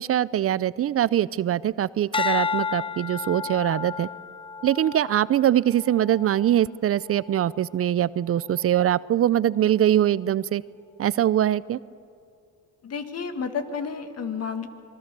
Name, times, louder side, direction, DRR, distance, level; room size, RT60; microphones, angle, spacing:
voice 1, 0.0-4.1 4.6-10.6 11.0-11.8, right 11 dB, 50° right, 19 dB, 0.5 m, -23 dB
sound 1, 2.1-6.6 7.2-7.6, left 5 dB, 15° left, 0.5 m, -31 dB
voice 2, 12.8-14.7, left 6 dB, 55° left, 8 dB, 2.0 m, -31 dB
26.5 x 21.0 x 6.8 m, 2.4 s
cardioid pair, 90°, 30 cm